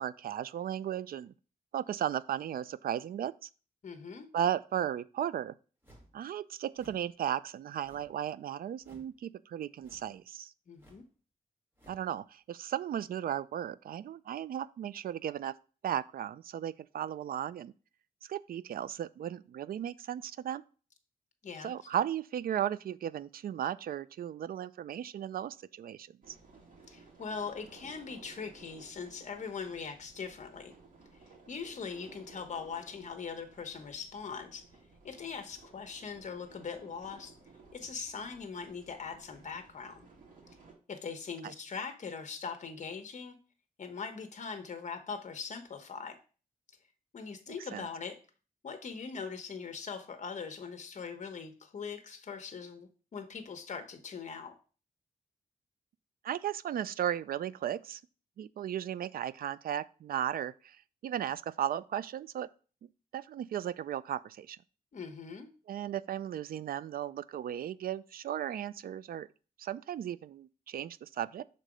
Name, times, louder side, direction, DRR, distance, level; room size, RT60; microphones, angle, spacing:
voice 1, 0.0-1.3 1.7-3.3 4.3-5.5 6.1-10.5 11.9-15.5 15.8-17.7 18.2-20.6 21.6-26.4 47.7-47.8 56.2-58.0 58.4-60.8 61.0-62.5 63.1-64.6 65.7-69.3 69.6-71.4, right 10 dB, 80° right, 0.4 m, -35 dB
voice 2, 3.8-4.3 10.7-11.0 21.4-21.7 26.9-30.7 31.5-34.6 35.0-37.4 37.7-40.0 40.9-43.3 43.8-46.2 47.1-48.2 48.6-54.5 64.9-65.5, left 5 dB, 55° left, 1.1 m, -41 dB
sound 1, 5.8-6.2 6.7-7.1 7.8-8.2 8.8-9.2 9.8-10.2 10.8-11.1 11.7-12.1, equal, 15° right, 2.1 m, -59 dB
sound 2, 26.2-40.7, right 4 dB, 60° right, 2.5 m, -57 dB
6.5 x 3.8 x 5.0 m
wide cardioid pair, 130°, 15 cm